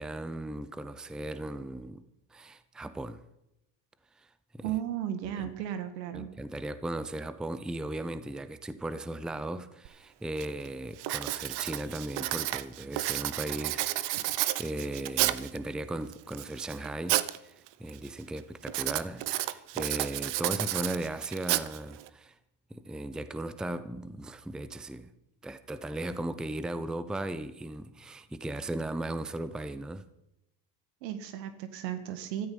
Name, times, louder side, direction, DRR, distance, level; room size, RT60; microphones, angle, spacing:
voice 1, 0.0-2.0 2.3-3.2 4.2-4.3 4.5-4.8 5.4-5.5 6.1-14.3 14.6-17.5 17.8-22.4 22.7-25.1 25.4-30.0, right 1 dB, ahead, 0.7 m, -37 dB
voice 2, 4.6-6.3 31.0-32.5, right 11 dB, 80° right, 1.9 m, -35 dB
Writing, 9.9-10.0 10.4-10.7 11.0-15.6 16.1-17.4 17.7-18.1 18.7-22.1, right 16 dB, 55° right, 1.0 m, -31 dB
15.0 x 14.0 x 5.5 m
supercardioid pair, 100°, 49 cm